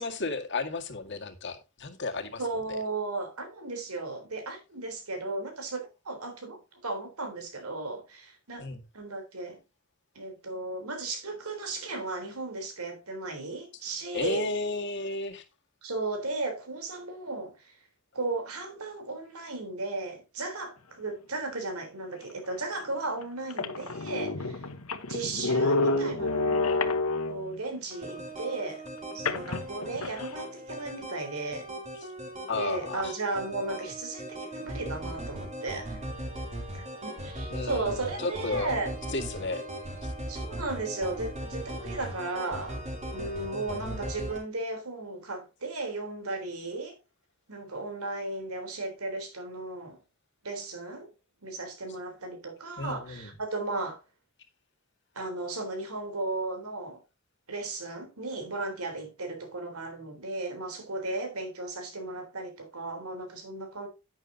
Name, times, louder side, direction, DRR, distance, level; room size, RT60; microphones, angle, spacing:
voice 1, 0.0-2.4 2.7-2.8 8.6-8.8 14.1-15.4 31.9-32.1 32.5-33.2 37.5-38.7 39.1-39.6 40.0-40.1 43.5-44.0 52.8-53.3, left 3 dB, 55° left, 1.9 m, -33 dB
voice 2, 2.4-9.6 10.2-14.5 15.8-17.8 18.1-24.6 25.1-26.9 27.3-28.8 29.1-31.7 32.6-36.0 36.7-38.9 40.3-42.8 43.1-47.0 47.5-50.0 50.4-51.1 51.4-54.0 55.2-57.0 57.5-63.9, right 2 dB, 90° right, 3.6 m, -35 dB
sound 1, 22.6-22.7 23.2-23.3 23.5-27.6 29.3-30.3, left 3 dB, 85° left, 1.2 m, -29 dB
sound 2, 27.9-44.4, right 1 dB, 30° right, 3.3 m, -39 dB
10.5 x 9.0 x 2.8 m
head